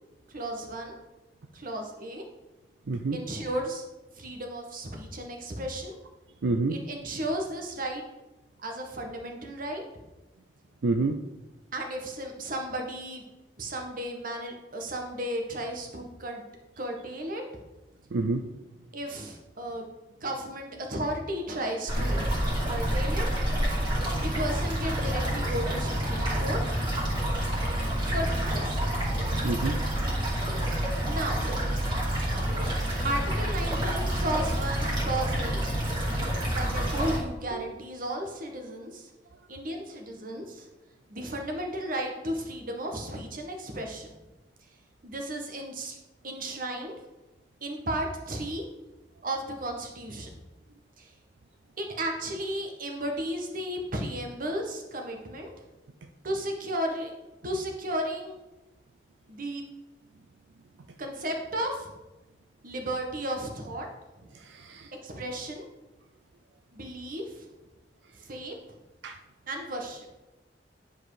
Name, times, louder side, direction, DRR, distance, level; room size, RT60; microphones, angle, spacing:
voice 1, 0.3-1.0 1.5-2.2 3.1-3.8 4.2-5.9 6.7-8.0 8.6-9.8 11.7-13.2 13.6-16.4 16.8-17.4 18.9-19.9 20.2-22.3 22.6-23.3 24.2-26.8 28.0-28.9 31.0-31.5 33.0-35.6 36.5-39.1 39.5-40.7 41.1-44.1 45.0-46.0 46.2-46.9 47.6-48.6 49.2-50.3 51.0-51.1 51.8-55.5 56.2-57.1 57.4-58.4 59.3-59.6 61.0-61.9 62.6-63.9 65.0-65.7 66.7-67.5 68.2-68.8 69.5-70.1, right 1 dB, 50° right, 3 dB, 1.5 m, -34 dB
voice 2, 2.9-3.2 6.4-6.8 10.8-11.2 18.1-18.4 29.4-29.8 37.5-37.6 64.5-64.9 69.0-69.2, right 3 dB, 80° right, 5 dB, 0.5 m, -28 dB
sound 1, 21.9-37.2, equal, 25° right, 2.6 m, -28 dB
10.5 x 4.7 x 5.0 m, 1.0 s
head